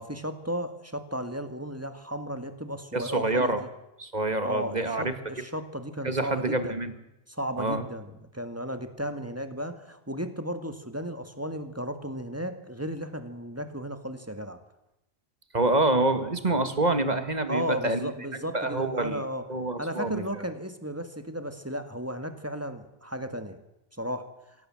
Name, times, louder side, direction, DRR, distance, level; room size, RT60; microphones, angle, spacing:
voice 1, 0.0-3.7 4.4-6.7 7.3-14.6 17.5-19.5 19.8-23.6 23.9-24.3, equal, 10° right, 9 dB, 1.7 m, -34 dB
voice 2, 2.9-3.6 4.0-5.1 6.0-6.9 7.6-7.8 15.5-18.1 18.5-19.2 19.5-20.2, right 2 dB, 35° right, 10 dB, 1.9 m, -26 dB
23.5 x 17.0 x 7.6 m, 0.89 s
omnidirectional pair, 1.3 m